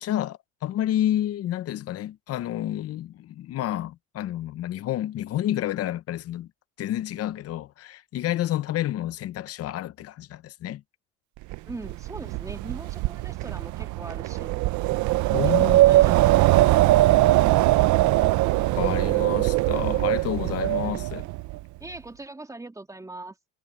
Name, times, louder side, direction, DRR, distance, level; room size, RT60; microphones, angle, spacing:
voice 1, 0.0-6.5 6.8-10.8 15.3-15.8 18.0-18.1 18.5-21.2, left 12 dB, 45° left, 0.8 m, -30 dB
Wind, 11.5-21.6, right 17 dB, 60° right, 0.7 m, -21 dB
voice 2, 11.7-14.5 15.6-17.5 20.7-21.1 21.8-23.4, right 2 dB, 10° right, 2.8 m, -41 dB
cardioid pair, 140°, 34 cm